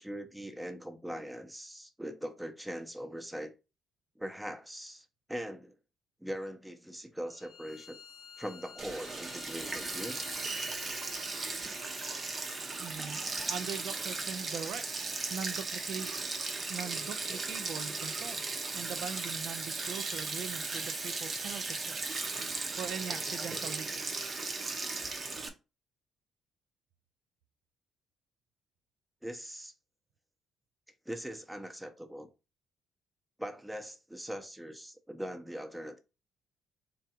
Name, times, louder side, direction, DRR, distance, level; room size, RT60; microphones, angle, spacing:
voice 1, 0.0-3.5 4.2-5.7 6.2-8.0 8.4-10.2 29.2-29.7 31.1-32.3 33.4-36.0, equal, 5° right, 0.6 m, -41 dB
Bowed string instrument, 7.3-12.7, left 7 dB, 85° left, 0.6 m, -51 dB
Sink (filling or washing), 8.8-25.5, right 3 dB, 40° right, 0.7 m, -37 dB
voice 2, 12.8-16.1 16.7-18.4 18.7-24.3, right 7 dB, 80° right, 0.4 m, -42 dB
3.7 x 2.2 x 4.3 m
cardioid pair, 90°, 0 cm